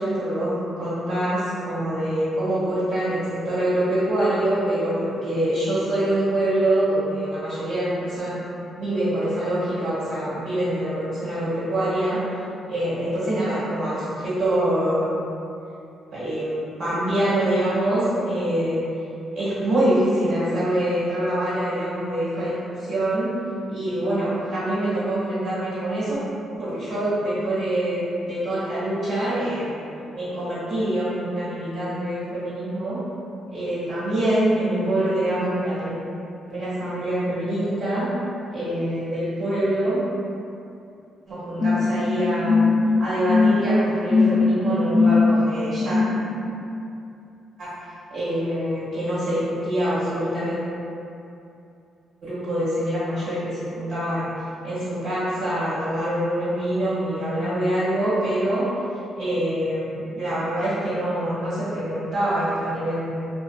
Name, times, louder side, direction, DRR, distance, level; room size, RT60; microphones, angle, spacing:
voice 1, 0.0-8.4 8.7-12.4 12.7-15.1 16.1-18.8 19.3-23.3 23.7-26.2 26.5-29.7 30.1-33.0 33.5-35.9 36.5-38.1 38.5-40.0 41.3-42.6 43.0-46.0 48.1-50.6 52.2-54.3 54.6-58.7 59.2-63.3, right 1 dB, 65° right, -12 dB, 1.2 m, -25 dB
sound 1, 41.6-46.4, left 3 dB, 35° left, 0.3 m, -20 dB
2.5 x 2.3 x 2.2 m, 2.7 s
cardioid pair, 90°, 0 cm